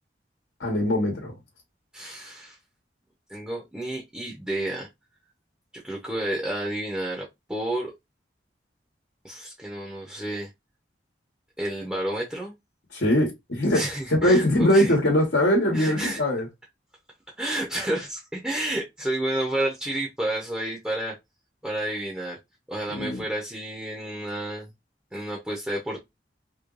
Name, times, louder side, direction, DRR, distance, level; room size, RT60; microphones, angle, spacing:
voice 1, 0.6-1.3 12.9-13.8 14.1-16.5 22.9-23.2, left 1 dB, 80° left, 1.2 m, -21 dB
voice 2, 1.9-2.6 3.3-4.9 5.7-7.9 9.2-10.5 11.6-12.5 13.7-14.9 15.7-16.2 17.4-21.1 21.6-22.4 22.7-24.7 25.1-26.0, right 1 dB, 5° right, 0.7 m, -30 dB
3.2 x 2.9 x 2.4 m
head